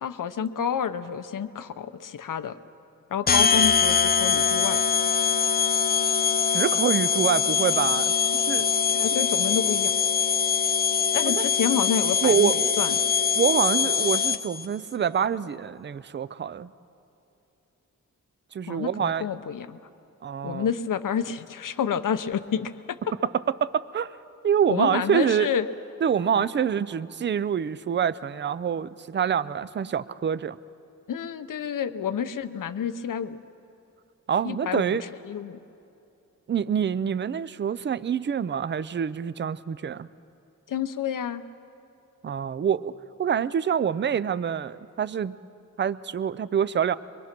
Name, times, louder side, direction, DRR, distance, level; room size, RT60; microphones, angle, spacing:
voice 1, 0.0-2.6 3.1-4.8 8.9-9.9 11.1-13.0 18.7-19.8 20.4-23.0 24.7-25.7 31.1-33.4 34.4-35.6 40.7-41.4, left 8 dB, 75° left, 12 dB, 0.8 m, -29 dB
sound 1, 3.3-14.7, left 6 dB, 30° left, 0.4 m, -23 dB
voice 2, 6.5-8.7 11.2-11.4 12.2-12.8 13.4-16.7 18.5-19.3 20.2-20.7 23.3-24.2 24.4-25.5 26.0-30.6 34.3-35.0 36.5-40.1 42.2-42.9 43.2-45.4 45.8-47.0, right 8 dB, 35° right, 16 dB, 0.4 m, -26 dB
23.5 x 23.5 x 6.0 m, 2.8 s
wide cardioid pair, 170°, 32 cm